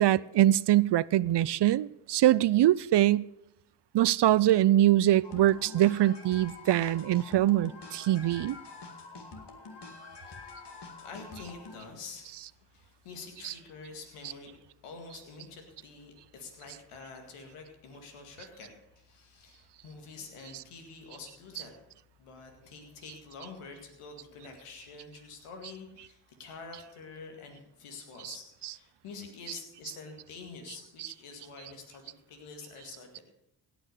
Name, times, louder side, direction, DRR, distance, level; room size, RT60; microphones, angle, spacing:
voice 1, 0.0-3.3 3.9-8.6 13.4-13.5, right 13 dB, 55° right, 0.5 m, -23 dB
sound 1, 5.2-11.8, left 3 dB, 55° left, 2.2 m, -46 dB
voice 2, 11.0-14.5 14.8-21.7 22.2-33.2, left 4 dB, 90° left, 2.1 m, -47 dB
17.0 x 6.2 x 6.7 m
supercardioid pair, 45°, 50 cm